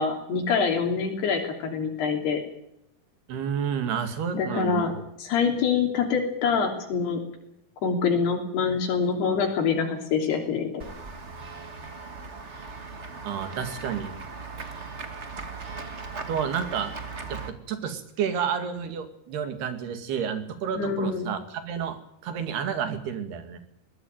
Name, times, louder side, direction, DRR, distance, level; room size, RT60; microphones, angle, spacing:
voice 1, 0.0-2.4 4.3-4.9 5.2-7.2 7.8-10.8 20.8-21.2, left 5 dB, 90° left, 2 dB, 5.2 m, -25 dB
voice 2, 3.3-4.9 13.2-14.2 16.3-16.9 17.3-23.6, right 7 dB, 85° right, 9 dB, 4.3 m, -30 dB
Run / Walk footsteps / Bell, 10.8-17.5, right 4 dB, 65° right, 0.6 m, -38 dB
21.5 x 17.0 x 9.0 m, 0.78 s
omnidirectional pair, 4.5 m